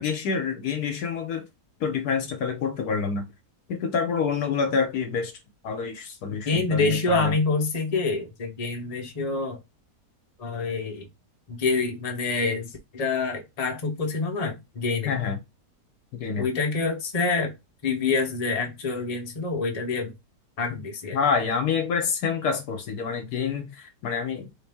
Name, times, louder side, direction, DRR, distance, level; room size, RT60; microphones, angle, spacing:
voice 1, 0.0-1.5 1.8-3.3 3.7-5.3 5.6-7.4 15.0-15.4 16.1-16.5 20.7-20.8 21.1-24.5, left 6 dB, 70° left, 1.2 m, -27 dB
voice 2, 6.4-9.6 10.4-11.1 11.5-15.2 16.4-17.5 17.8-20.2 20.6-21.2, left 4 dB, 30° left, 0.8 m, -27 dB
4.3 x 2.7 x 3.4 m
omnidirectional pair, 1.8 m